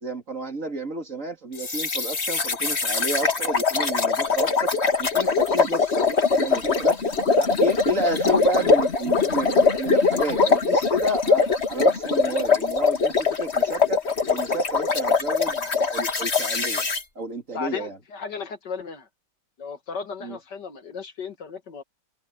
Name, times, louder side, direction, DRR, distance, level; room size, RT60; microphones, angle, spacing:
voice 1, 0.0-7.0 7.4-14.0 14.3-16.8 17.1-18.0 20.2-20.4, right 1 dB, 45° right, 3.2 m, -31 dB
sound 1, 1.6-17.0, left 4 dB, 40° left, 2.2 m, -22 dB
voice 2, 17.5-19.1 19.6-21.8, left 5 dB, 75° left, 2.5 m, -35 dB
open air
omnidirectional pair, 1.8 m